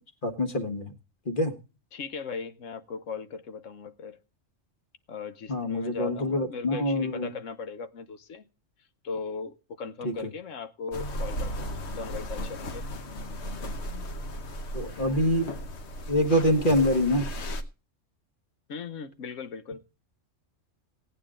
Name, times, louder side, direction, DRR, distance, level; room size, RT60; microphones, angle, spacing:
voice 1, 0.2-0.9 1.2-1.5 5.5-7.3 10.0-10.1 14.7-15.5 16.1-17.3, left 1 dB, 45° left, 1.6 m, -25 dB
voice 2, 1.9-4.2 5.1-8.4 9.0-12.8 18.7-19.8, left 5 dB, 85° left, 1.3 m, -38 dB
sound 1, 10.9-17.6, equal, 60° left, 1.3 m, -35 dB
17.0 x 9.1 x 3.7 m
omnidirectional pair, 1.3 m